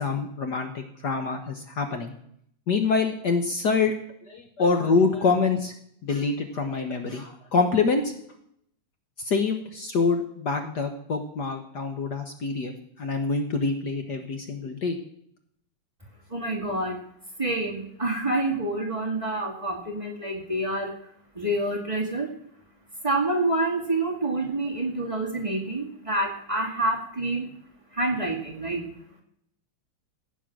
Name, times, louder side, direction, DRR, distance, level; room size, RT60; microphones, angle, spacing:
voice 1, 0.0-2.1 2.7-3.9 4.3-5.7 6.0-8.1 9.2-15.0, left 4 dB, 55° left, 6 dB, 1.7 m, -26 dB
voice 2, 16.3-17.0 17.4-20.9 21.3-22.3 23.0-27.5 27.9-28.9, right 2 dB, 15° right, 1 dB, 2.1 m, -27 dB
15.5 x 9.0 x 6.2 m, 0.71 s
omnidirectional pair, 2.4 m